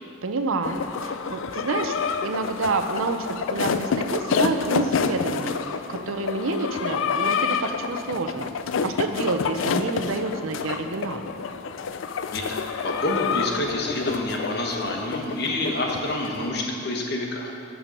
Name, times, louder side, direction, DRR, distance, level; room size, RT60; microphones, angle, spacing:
voice 1, 0.2-5.5 5.9-8.5 8.8-11.2, right 3 dB, 90° right, 7 dB, 0.6 m, -28 dB
sound 1, 0.6-16.4, left 6 dB, 75° left, 0.4 m, -28 dB
voice 2, 12.3-17.5, left 1 dB, 55° left, 1 dB, 1.1 m, -28 dB
9.0 x 6.2 x 5.3 m, 2.8 s
head